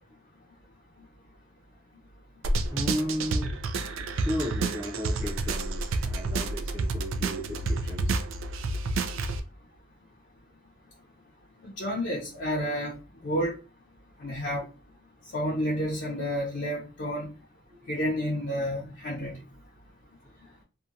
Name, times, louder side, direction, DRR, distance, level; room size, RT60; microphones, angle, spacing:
sound 1, 2.4-9.4, right 2 dB, 85° right, 0.3 m, -29 dB
voice 1, 2.6-3.6 4.1-8.2 20.4-20.6, equal, 20° right, 0.6 m, -34 dB
voice 2, 11.6-13.0 13.2-13.6 14.2-14.6 15.3-17.3 17.9-19.3, equal, 60° left, 0.5 m, -30 dB
2.7 x 2.2 x 2.5 m
head